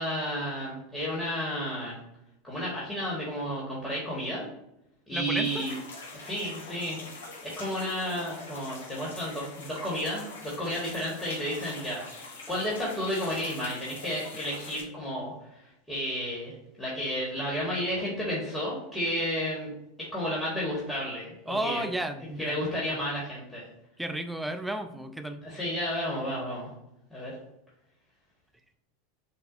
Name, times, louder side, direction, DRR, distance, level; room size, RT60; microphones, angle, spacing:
voice 1, 0.0-2.0 2.4-4.4 5.1-5.7 6.1-19.7 20.0-21.8 22.2-23.7 25.4-26.7 27.1-27.3, equal, 10° left, -7 dB, 1.5 m, -32 dB
voice 2, 5.1-5.7 21.5-22.7 24.0-25.4, right 1 dB, 5° right, 7 dB, 0.5 m, -33 dB
sound 1, 5.4-14.8, left 3 dB, 75° left, 1.0 m, -44 dB
6.6 x 2.3 x 2.6 m, 0.84 s
hypercardioid pair, 90°, 0 cm